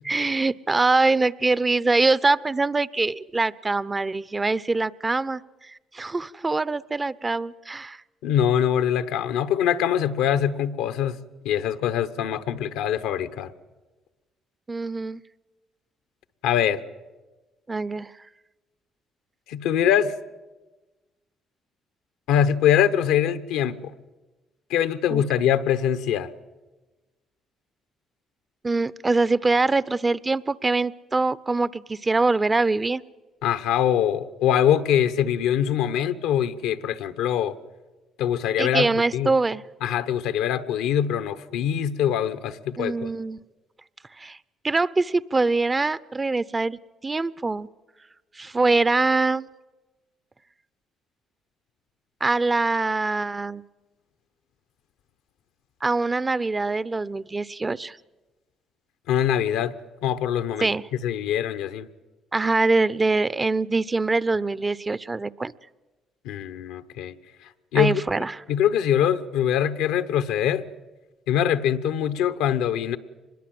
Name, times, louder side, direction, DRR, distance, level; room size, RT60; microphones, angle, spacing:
voice 1, 0.1-8.0 14.7-15.2 17.7-18.1 25.1-25.2 28.6-33.0 38.6-39.6 42.8-43.4 44.2-44.4 44.6-47.7 48.4-49.5 52.2-53.6 55.8-58.0 60.6-60.8 62.3-65.5 67.7-68.4, right 3 dB, 25° right, 18 dB, 0.7 m, -24 dB
voice 2, 8.2-13.5 16.4-16.8 19.5-20.1 22.3-23.8 24.7-26.3 33.4-37.6 38.2-38.9 39.1-39.3 39.8-43.1 59.1-59.7 60.0-60.7 61.0-61.9 66.2-67.1 67.7-68.0 68.5-70.6 71.3-73.0, left 9 dB, 85° left, 12 dB, 1.0 m, -23 dB
24.5 x 21.0 x 7.8 m, 1.2 s
supercardioid pair, 65°, 0 cm